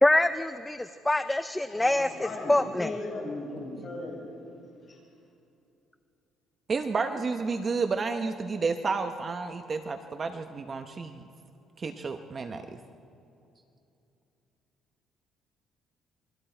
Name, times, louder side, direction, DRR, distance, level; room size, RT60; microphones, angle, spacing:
voice 1, 0.0-2.9, left 1 dB, 10° left, 10 dB, 0.4 m, -25 dB
voice 2, 1.5-4.3 4.9-5.0, left 2 dB, 30° left, -3 dB, 6.8 m, -37 dB
voice 3, 6.7-11.2 11.8-12.7, right 4 dB, 30° right, 7 dB, 0.8 m, -31 dB
28.0 x 22.5 x 4.5 m, 2.7 s
cardioid pair, 160°, 0 cm